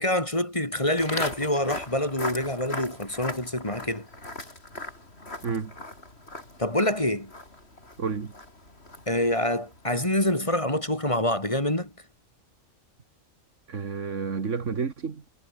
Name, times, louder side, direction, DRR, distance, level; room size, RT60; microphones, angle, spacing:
voice 1, 0.0-4.1 6.6-7.3 9.1-11.9, left 1 dB, 25° left, 4.0 m, -26 dB
Walk footsteps, 1.0-10.2, left 2 dB, 50° left, 5.7 m, -39 dB
voice 2, 8.0-8.3 13.7-15.2, right 5 dB, 65° right, 2.0 m, -30 dB
omnidirectional pair, 1.4 m